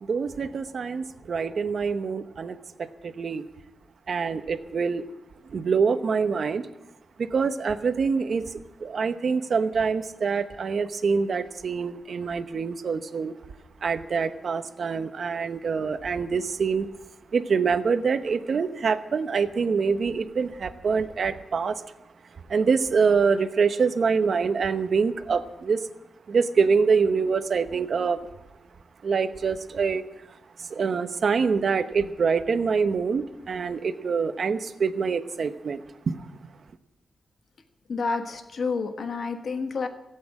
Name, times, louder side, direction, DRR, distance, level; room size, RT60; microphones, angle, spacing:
voice 1, 0.0-3.5 4.1-5.0 5.4-6.7 7.2-13.3 13.8-16.9 17.3-21.8 22.3-25.9 26.3-28.2 29.0-36.4, right 5 dB, 55° right, 1.0 m, -25 dB
voice 2, 37.9-39.9, left 4 dB, 60° left, 1.3 m, -29 dB
16.5 x 8.7 x 8.6 m
wide cardioid pair, 115°, 0 cm